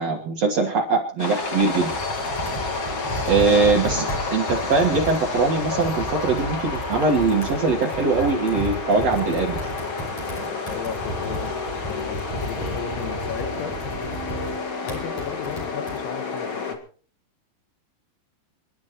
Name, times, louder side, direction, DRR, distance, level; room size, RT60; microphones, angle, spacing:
voice 1, 0.0-1.9 3.3-4.0 4.3-9.7, right 4 dB, 85° right, 1 dB, 1.4 m, -21 dB
sound 1, 1.2-16.7, left 3 dB, 90° left, 1.1 m, -30 dB
Computer keyboard, 1.4-16.0, equal, 35° left, 6.6 m, -34 dB
voice 2, 3.3-3.7 10.5-11.6 11.9-13.8 14.8-16.8, left 8 dB, 75° left, 5 dB, 3.6 m, -35 dB
29.0 x 11.5 x 3.1 m, 0.44 s
omnidirectional pair, 5.6 m